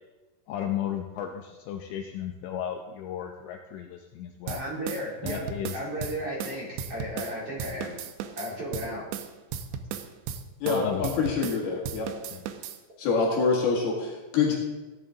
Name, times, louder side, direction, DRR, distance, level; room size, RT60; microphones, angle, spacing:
voice 1, 0.5-4.6 5.2-5.8 10.7-11.0 12.3-12.4, left 10 dB, 80° left, 3 dB, 2.8 m, -34 dB
voice 2, 4.4-5.4 5.7-7.9 8.2-9.2, equal, 35° right, -6 dB, 3.3 m, -34 dB
sound 1, 4.5-7.3 7.6-11.6 11.8-12.8, right 8 dB, 80° right, 2.5 m, -35 dB
voice 3, 10.6-12.1 13.0-14.6, left 4 dB, 60° left, -2 dB, 3.3 m, -26 dB
17.0 x 11.0 x 3.8 m, 1.2 s
omnidirectional pair, 5.7 m